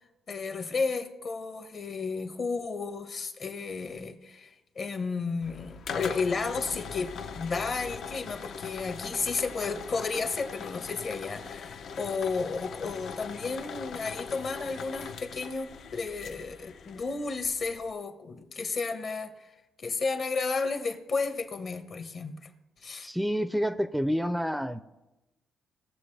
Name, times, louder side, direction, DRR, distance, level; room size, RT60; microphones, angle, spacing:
voice 1, 0.3-19.5 19.8-22.4 22.8-23.1, left 4 dB, 50° left, 1.2 m, -33 dB
sound 1, 5.4-17.9, left 6 dB, 65° left, 0.6 m, -41 dB
voice 2, 23.0-24.8, equal, 5° right, 0.4 m, -28 dB
18.5 x 7.0 x 3.3 m
cardioid pair, 90°, 0 cm